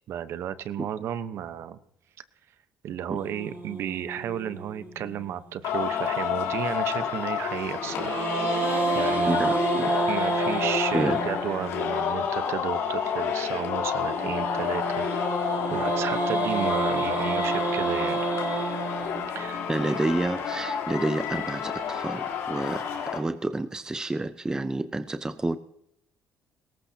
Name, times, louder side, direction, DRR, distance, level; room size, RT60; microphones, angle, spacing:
voice 1, 0.1-1.8 2.8-8.2 8.9-9.5 10.1-15.1 15.7-18.2 19.3-19.6, right 10 dB, 70° right, 12 dB, 1.0 m, -33 dB
sound 1, 3.2-5.6 7.8-12.0 14.1-20.3, right 3 dB, 50° right, 3.7 m, -30 dB
Singing, 5.6-23.2, left 7 dB, 85° left, 3.5 m, -29 dB
voice 2, 9.3-9.9 10.9-11.2 19.7-25.6, right 2 dB, 15° right, 11 dB, 0.7 m, -29 dB
20.5 x 18.0 x 2.9 m, 0.76 s
cardioid pair, 90°, 5 cm